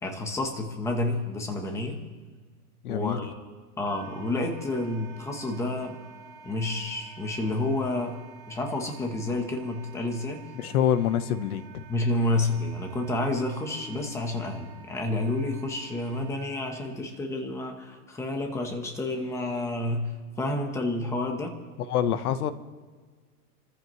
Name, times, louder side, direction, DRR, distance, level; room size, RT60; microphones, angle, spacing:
voice 1, 0.0-2.0 2.9-3.3 3.8-6.0 6.4-8.2 8.5-10.5 11.9-21.5, left 2 dB, 5° left, 3 dB, 1.1 m, -30 dB
voice 2, 2.8-3.2 10.5-11.8 21.9-22.5, left 9 dB, 65° left, 12 dB, 1.2 m, -26 dB
Wind instrument woodwind instrument, 3.8-16.9, right 5 dB, 60° right, 5.0 m, -50 dB
28.5 x 14.5 x 3.2 m, 1.5 s
supercardioid pair, 165°, 48 cm